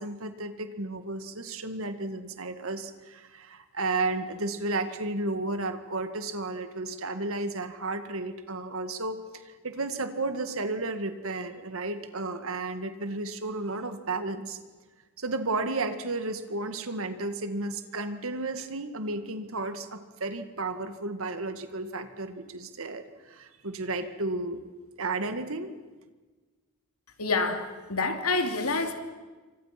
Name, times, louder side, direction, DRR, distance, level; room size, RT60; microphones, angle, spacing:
voice 1, 0.0-14.6 15.2-24.6 25.0-25.7, right 2 dB, 70° right, 2.0 m, -33 dB
voice 2, 27.2-28.9, left 3 dB, 90° left, 2.7 m, -27 dB
28.5 x 25.0 x 6.0 m
head